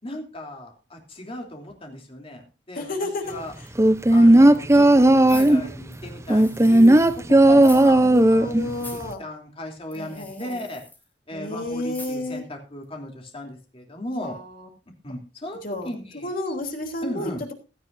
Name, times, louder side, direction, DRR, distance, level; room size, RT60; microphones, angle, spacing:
voice 1, 0.0-2.9 3.2-3.5 3.8-10.8 11.3-14.4 15.0-16.3 17.0-17.4, left 1 dB, 35° left, 2 dB, 3.1 m, -36 dB
voice 2, 2.7-3.3 7.7-9.2 9.9-10.6 11.3-12.4 14.2-14.7 15.6-15.9 16.2-17.3, left 2 dB, 55° left, 4 dB, 3.3 m, -31 dB
sound 1, 3.8-5.7 6.3-8.7 9.0-9.1, right 1 dB, 15° right, 0.7 m, -14 dB
sound 2, 5.2-7.2 7.5-8.2 8.7-9.1 9.9-11.0 11.9-12.4 12.8-12.9, left 2 dB, 10° left, 3.7 m, -44 dB
16.5 x 12.5 x 2.7 m, 0.30 s
head